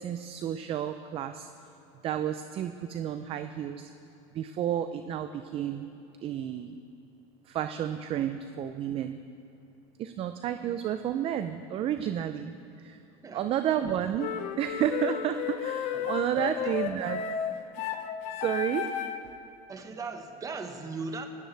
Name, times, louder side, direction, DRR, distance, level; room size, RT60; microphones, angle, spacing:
voice 1, 0.0-1.5 2.0-3.9 4.3-5.9 6.2-6.8 7.5-9.2 10.0-13.0 13.3-17.2 18.4-18.9, right 10 dB, 40° right, 9 dB, 0.5 m, -31 dB
sound 1, 14.2-19.3, left 9 dB, 55° left, 0.9 m, -33 dB
voice 2, 15.9-16.6 19.7-21.3, right 4 dB, 20° right, 5 dB, 1.4 m, -39 dB
18.5 x 17.5 x 3.4 m, 2.8 s
supercardioid pair, 125°, 15 cm